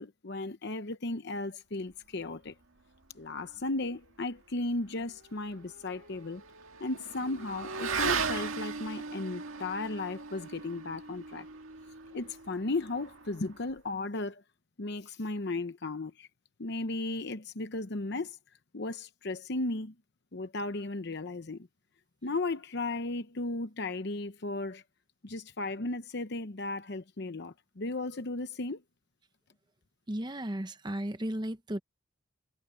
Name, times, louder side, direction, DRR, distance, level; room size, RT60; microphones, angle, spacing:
voice 1, 0.0-2.5 3.1-6.4 6.8-11.5 12.1-14.4 14.8-16.3 16.6-18.4 18.7-19.9 20.3-21.7 22.2-24.8 25.2-28.8, left 2 dB, 55° left, 0.9 m, -35 dB
Motorcycle / Accelerating revving vroom, 5.0-13.8, right 5 dB, 80° right, 1.9 m, -38 dB
voice 2, 30.1-31.8, right 1 dB, 20° right, 0.9 m, -34 dB
head